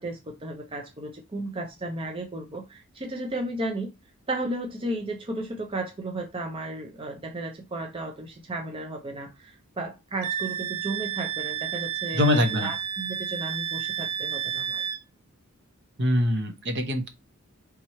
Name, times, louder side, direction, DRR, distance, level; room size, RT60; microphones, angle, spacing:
voice 1, 0.0-3.9 4.3-14.8, right 2 dB, 25° right, 0.5 m, -34 dB
Wind instrument woodwind instrument, 10.2-15.0, right 9 dB, 75° right, 0.4 m, -31 dB
voice 2, 12.1-12.7 16.0-17.1, left 1 dB, 55° right, 0.9 m, -23 dB
3.5 x 3.0 x 4.2 m
head